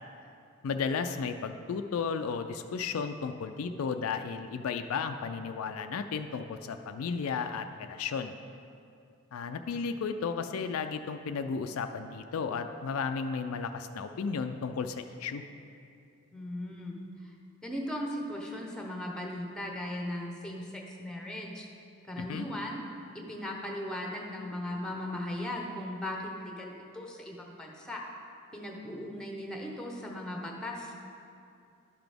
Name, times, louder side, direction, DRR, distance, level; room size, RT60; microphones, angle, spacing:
voice 1, 0.6-8.3 9.3-15.4 22.2-22.5, left 5 dB, 75° left, 7 dB, 0.4 m, -34 dB
voice 2, 16.3-17.3 17.6-21.7 22.1-22.8 23.1-28.0 28.5-30.9, left 1 dB, 5° left, 0 dB, 0.9 m, -38 dB
11.5 x 5.9 x 3.5 m, 2.5 s
head